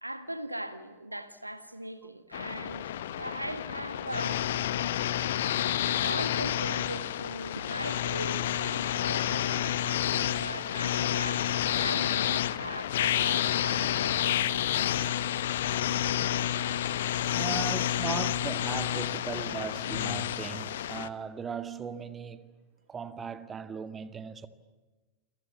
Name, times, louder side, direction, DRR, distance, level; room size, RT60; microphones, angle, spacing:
voice 1, 0.0-4.5 6.0-15.0, right 1 dB, 85° right, 1.7 m, -40 dB
sound 1, 2.3-21.1, left 11 dB, 60° left, 1.1 m, -29 dB
voice 2, 17.4-22.5 22.9-24.5, right 6 dB, 20° right, 1.9 m, -38 dB
29.0 x 23.5 x 8.5 m
figure-of-eight pair, 90°, 0 cm